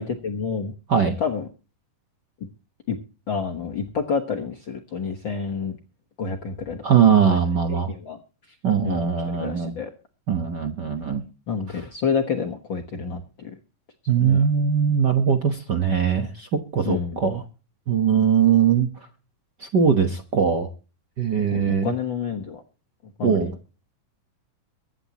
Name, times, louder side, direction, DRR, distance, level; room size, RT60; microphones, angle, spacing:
voice 1, 0.0-0.7 1.2-1.5 2.9-3.0 3.3-5.8 6.2-6.8 7.3-7.4 7.7-8.2 8.8-9.9 11.5-13.5 14.2-14.5 16.8-17.3 21.5-22.6 23.2-23.5, left 5 dB, 50° left, 3 dB, 1.4 m, -29 dB
voice 2, 6.8-7.9 8.6-9.7 10.3-11.2 11.7-11.8 14.1-17.4 17.9-18.9 19.6-20.7 21.2-21.9 23.2-23.5, right 7 dB, 70° right, 7 dB, 1.0 m, -21 dB
23.5 x 9.8 x 3.0 m, 0.33 s
omnidirectional pair, 3.8 m